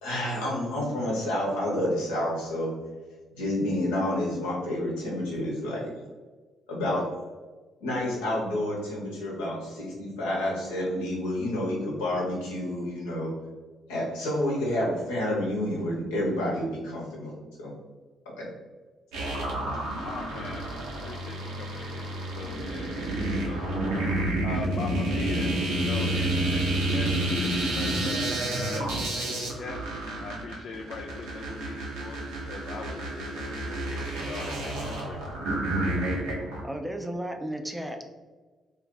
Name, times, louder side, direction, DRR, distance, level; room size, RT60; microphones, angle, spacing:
voice 1, 0.0-2.8 3.4-5.9 6.7-7.1 7.8-13.3 13.9-17.7 18.4-18.5 19.7-19.8, left 1 dB, 75° left, -4 dB, 0.9 m, -29 dB
sound 1, 19.1-36.6, right 1 dB, 75° right, 0.7 m, -29 dB
voice 2, 19.9-20.7 21.0-23.8 24.4-29.8 30.2-35.6, left 4 dB, 60° left, 1 dB, 0.3 m, -41 dB
voice 3, 36.6-38.0, right 1 dB, 5° right, 4 dB, 0.4 m, -34 dB
2.5 x 2.3 x 3.7 m, 1.3 s
figure-of-eight pair, 45°, 0 cm